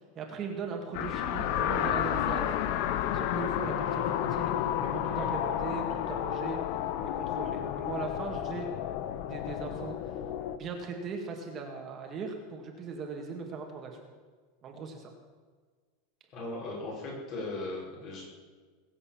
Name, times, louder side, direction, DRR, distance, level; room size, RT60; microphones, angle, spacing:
voice 1, 0.1-2.5 3.1-6.6 7.0-8.7 9.3-10.0 10.5-14.0 14.6-15.1, right 4 dB, 30° right, 2 dB, 2.2 m, -39 dB
sound 1, 0.9-10.6, left 10 dB, 55° left, 1.1 m, -31 dB
voice 2, 16.3-18.3, left 2 dB, 40° left, -2 dB, 5.7 m, -38 dB
21.0 x 8.5 x 7.5 m, 1.5 s
supercardioid pair, 150°, 0 cm